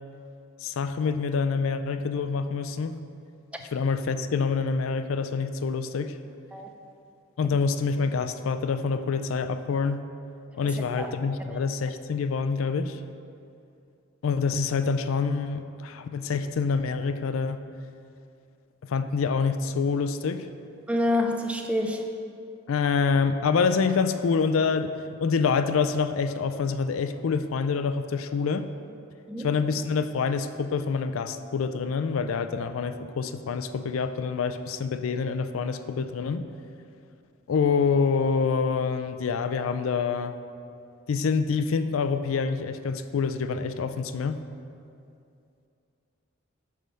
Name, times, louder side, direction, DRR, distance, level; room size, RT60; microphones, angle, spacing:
voice 1, 0.6-3.0 3.7-6.2 7.4-10.1 10.6-13.0 14.2-17.6 18.8-20.5 22.7-24.9 25.2-28.7 29.4-36.4 37.5-40.3 41.1-44.4, left 5 dB, 85° left, 10 dB, 0.4 m, -26 dB
voice 2, 10.6-11.1 11.5-11.6 20.9-22.1 29.3-29.5, left 1 dB, 5° right, 3 dB, 0.5 m, -28 dB
9.2 x 3.4 x 6.3 m, 2.5 s
head